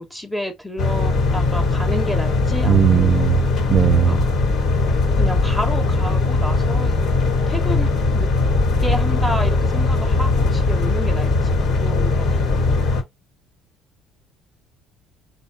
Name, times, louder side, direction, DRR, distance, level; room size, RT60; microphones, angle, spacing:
voice 1, 0.0-3.3 3.8-4.3 5.1-7.0 7.3-7.9 8.1-8.3 8.8-12.8, left 1 dB, 5° left, 1.2 m, -30 dB
sound 1, 0.8-13.0, left 3 dB, 55° left, 1.9 m, -19 dB
voice 2, 2.6-3.4 3.7-4.2, right 10 dB, 50° right, 0.5 m, -17 dB
4.5 x 2.7 x 3.7 m
cardioid pair, 115°, 0 cm